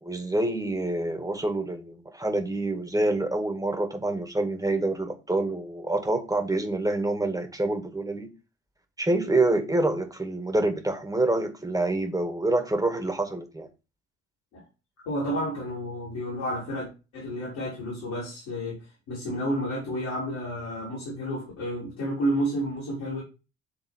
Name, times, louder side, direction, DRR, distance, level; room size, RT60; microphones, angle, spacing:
voice 1, 0.0-8.3 9.0-13.7, right 2 dB, 10° right, 1.9 m, -27 dB
voice 2, 15.1-23.2, equal, 70° left, 3.7 m, -31 dB
8.3 x 3.7 x 4.3 m
figure-of-eight pair, 45°, 35 cm